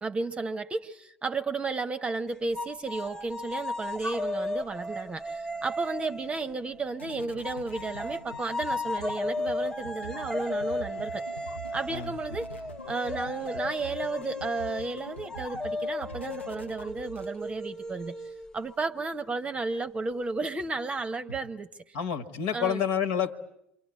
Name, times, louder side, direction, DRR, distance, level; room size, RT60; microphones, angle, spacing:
voice 1, 0.0-11.2 11.7-12.5 12.9-18.2 18.5-22.0 22.5-22.8, right 3 dB, 20° right, 1.0 m, -33 dB
sound 1, 2.5-6.9 7.4-18.8, left 2 dB, 10° left, 1.0 m, -35 dB
sound 2, 5.1-17.7, right 1 dB, 90° left, 1.1 m, -46 dB
voice 2, 21.9-23.3, left 8 dB, 55° left, 1.8 m, -28 dB
28.0 x 23.5 x 8.5 m
figure-of-eight pair, 70°, 6 cm